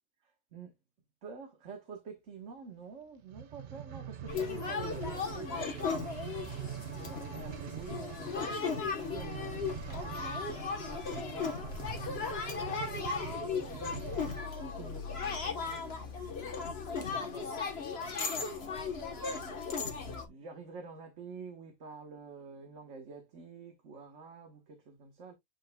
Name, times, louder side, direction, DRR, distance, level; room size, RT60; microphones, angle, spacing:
voice 1, 0.2-0.7 1.2-6.2 7.0-14.0 14.6-16.5 17.2-17.5 18.0-18.8 20.3-25.3, right 4 dB, 75° right, 1.6 m, -49 dB
sound 1, 3.2-14.6 15.2-15.3, right 10 dB, 55° right, 0.5 m, -44 dB
sound 2, 4.3-20.3, left 5 dB, 55° left, 1.5 m, -36 dB
8.7 x 5.1 x 2.3 m
omnidirectional pair, 1.3 m